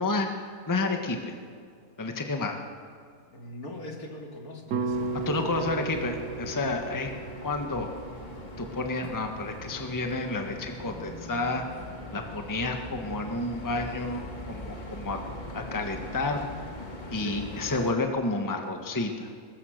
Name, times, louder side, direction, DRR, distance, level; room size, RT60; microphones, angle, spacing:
voice 1, 0.0-1.3 2.0-2.6 5.2-7.1 7.4-7.9 8.6-11.6 12.1-15.2 15.5-16.5 17.1-19.3, left 2 dB, 15° left, 4 dB, 1.3 m, -30 dB
voice 2, 3.3-5.6 6.5-6.8 17.2-17.5, left 1 dB, 65° left, 1 dB, 3.0 m, -42 dB
sound 1, 4.7-9.0, right 4 dB, 80° right, 1.5 m, -35 dB
sound 2, 4.9-17.9, left 1 dB, 30° left, 2.0 m, -41 dB
22.5 x 21.0 x 6.5 m, 2.2 s
omnidirectional pair, 1.7 m